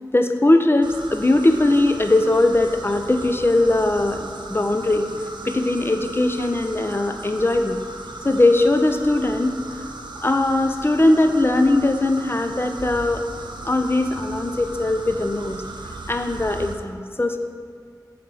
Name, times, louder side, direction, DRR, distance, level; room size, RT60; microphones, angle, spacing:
voice 1, 0.1-5.1 5.4-7.8 8.2-9.6 10.2-13.2 13.6-15.6 16.1-17.4, left 2 dB, 30° left, 6 dB, 0.6 m, -20 dB
sound 1, 0.8-16.7, right 2 dB, 85° right, 0.7 m, -37 dB
8.3 x 4.3 x 6.3 m, 2.1 s
wide cardioid pair, 50°, 7 cm